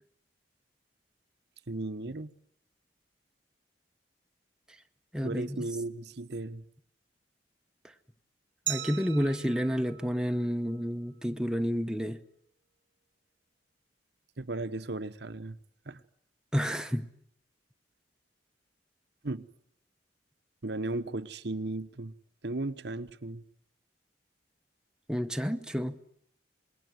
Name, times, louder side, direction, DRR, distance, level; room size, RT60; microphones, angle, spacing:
voice 1, 1.7-2.3 5.2-6.6 14.4-15.6 15.8-16.0 19.2-19.5 20.6-22.1 22.4-23.4, right 2 dB, 60° right, 1.1 m, -36 dB
voice 2, 5.1-5.6 8.7-12.2 16.5-17.1 25.1-26.0, equal, 5° right, 1.0 m, -30 dB
Glass, 8.7-11.4, right 12 dB, 90° right, 1.6 m, -40 dB
27.0 x 21.0 x 9.3 m
head